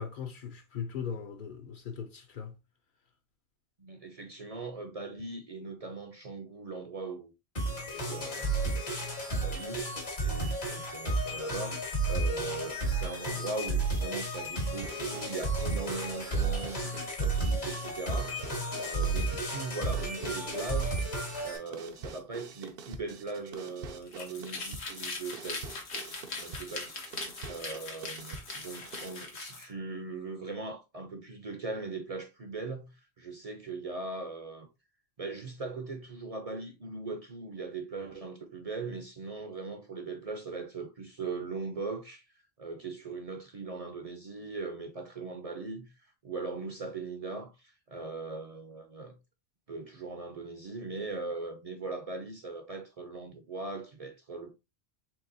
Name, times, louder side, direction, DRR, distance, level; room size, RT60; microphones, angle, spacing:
voice 1, 0.0-2.6, left 7 dB, 55° left, 0.7 m, -39 dB
voice 2, 3.8-7.3 7.6-8.6 9.2-11.8 12.1-21.0 21.4-34.7 35.2-42.2 42.6-49.1 49.7-54.5, right 3 dB, 45° right, 0.6 m, -40 dB
sound 1, 7.6-21.6, right 2 dB, 70° left, 1.8 m, -32 dB
sound 2, 14.8-29.3, right 5 dB, 70° right, 0.8 m, -46 dB
sound 3, 24.0-29.7, left 3 dB, 90° left, 1.4 m, -40 dB
4.7 x 3.4 x 2.6 m
omnidirectional pair, 1.1 m